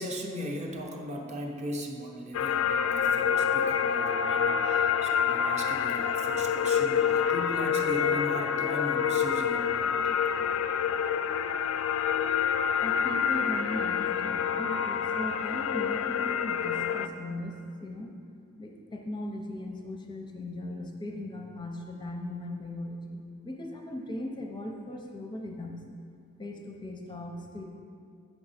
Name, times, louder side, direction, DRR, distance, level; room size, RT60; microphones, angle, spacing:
voice 1, 0.0-10.3, equal, 35° right, 1 dB, 0.7 m, -38 dB
sound 1, 2.3-17.1, left 7 dB, 80° left, 0.3 m, -27 dB
voice 2, 12.8-17.5 17.8-18.1 18.6-25.8 26.4-27.7, left 1 dB, 20° left, 1 dB, 0.5 m, -38 dB
8.0 x 5.8 x 4.2 m, 2.4 s
head